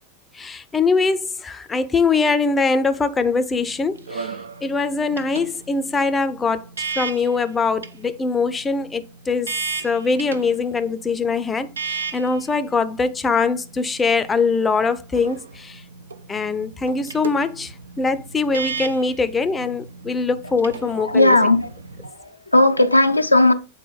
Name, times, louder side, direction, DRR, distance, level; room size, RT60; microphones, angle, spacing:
voice 1, 0.3-4.4 4.6-9.6 9.8-15.8 16.3-21.4, left 4 dB, 15° left, 0.5 m, -22 dB
sound 1, 3.5-22.1, right 5 dB, 70° right, 0.5 m, -36 dB
voice 2, 20.8-21.7 22.0-23.5, left 2 dB, 85° left, 0.6 m, -16 dB
7.4 x 4.0 x 4.1 m
figure-of-eight pair, 90°, 0 cm